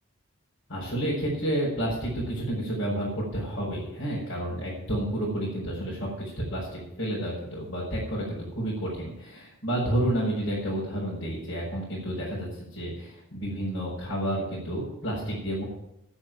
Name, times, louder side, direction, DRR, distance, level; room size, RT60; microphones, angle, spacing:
voice 1, 0.7-15.6, right 1 dB, 65° left, -7 dB, 5.6 m, -30 dB
10.0 x 9.6 x 9.2 m, 0.84 s
head